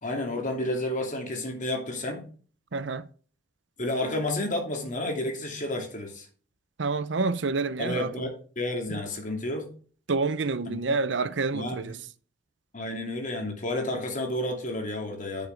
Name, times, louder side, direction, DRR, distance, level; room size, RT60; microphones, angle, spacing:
voice 1, 0.0-2.3 3.8-6.3 7.8-9.7 10.6-10.8 11.5-11.9 12.7-15.5, left 1 dB, 45° left, 2.6 m, -31 dB
voice 2, 2.7-3.0 6.8-8.1 10.1-12.0, right 4 dB, 70° right, 0.7 m, -28 dB
9.8 x 6.7 x 3.4 m
head